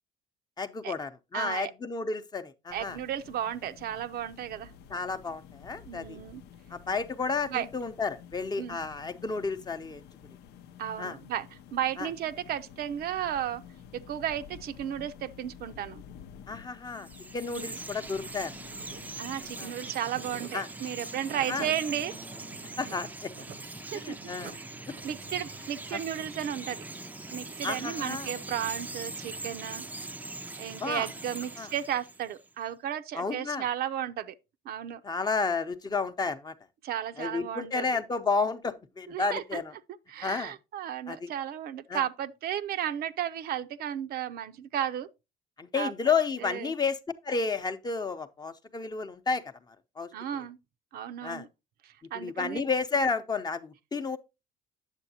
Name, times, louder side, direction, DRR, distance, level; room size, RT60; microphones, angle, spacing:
voice 1, 0.6-3.0 4.9-6.2 6.7-10.0 11.0-11.2 12.0-12.1 16.5-17.1 17.3-18.5 19.6-19.7 20.5-20.7 21.5-21.7 22.8-23.3 23.9-24.5 25.9-26.0 27.6-28.3 30.8-31.1 31.6-31.7 33.1-33.6 35.0-36.5 37.2-39.7 40.2-40.5 41.1-41.3 41.9-42.0 45.6-50.4 51.2-51.5 52.1-54.2, left 4 dB, 25° left, 0.7 m, -31 dB
voice 2, 1.3-1.7 2.7-4.7 5.9-6.4 7.5-7.7 8.6-8.8 10.8-13.6 13.9-16.0 17.5-17.8 19.2-22.1 23.9-24.2 25.0-26.8 27.3-29.8 30.6-34.3 34.7-35.0 36.8-37.8 39.1-39.6 40.1-45.1 45.7-45.9 46.4-46.7 50.1-50.6 50.9-51.5 51.8-52.6, right 10 dB, 65° right, 0.6 m, -34 dB
sound 1, 2.7-19.6, left 8 dB, 80° left, 0.6 m, -51 dB
Chirp tweet, 16.9-32.5, right 2 dB, 10° right, 0.4 m, -41 dB
sound 2, 18.2-26.2, right 6 dB, 80° right, 0.9 m, -50 dB
9.0 x 7.1 x 2.8 m
cardioid pair, 110°, 17 cm